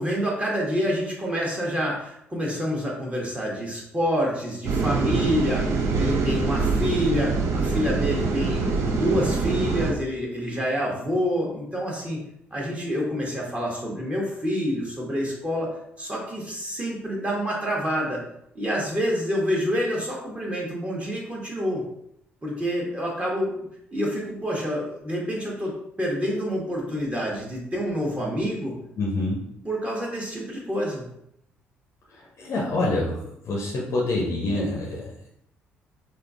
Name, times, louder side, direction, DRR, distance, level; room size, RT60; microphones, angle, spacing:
voice 1, 0.0-12.2 12.5-15.7 16.0-18.2 18.5-21.8 22.4-23.5 23.9-28.7 29.6-31.0, equal, 20° right, -3 dB, 1.2 m, -27 dB
sound 1, 4.6-9.9, right 4 dB, 55° right, 0.5 m, -24 dB
voice 2, 29.0-29.4 32.1-35.3, left 2 dB, 45° left, -3 dB, 0.7 m, -27 dB
3.6 x 2.6 x 2.5 m, 0.74 s
figure-of-eight pair, 45°, 6 cm